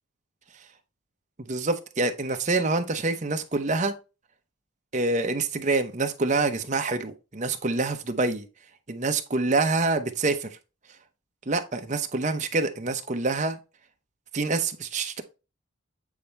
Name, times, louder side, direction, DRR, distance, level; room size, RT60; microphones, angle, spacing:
voice 1, 1.4-3.9 4.9-8.4 8.9-10.5 11.5-13.6 14.3-15.2, right 3 dB, 35° right, 0.8 m, -26 dB
8.4 x 4.2 x 3.4 m
head